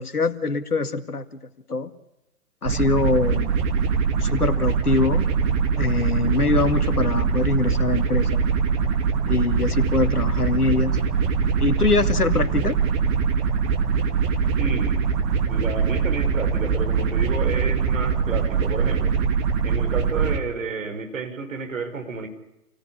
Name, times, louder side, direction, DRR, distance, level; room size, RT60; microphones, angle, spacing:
voice 1, 0.0-1.4 1.7-1.9 2.6-3.5 4.2-5.3 5.8-8.4 9.2-11.0 11.6-12.7, left 3 dB, 75° left, 9 dB, 2.3 m, -23 dB
sound 1, 2.7-20.4, right 6 dB, 20° right, 2.0 m, -22 dB
voice 2, 14.6-15.1 15.5-19.2 19.6-22.3, right 4 dB, 60° right, 6 dB, 5.6 m, -31 dB
28.5 x 17.0 x 9.9 m, 0.91 s
figure-of-eight pair, 130°, 45 cm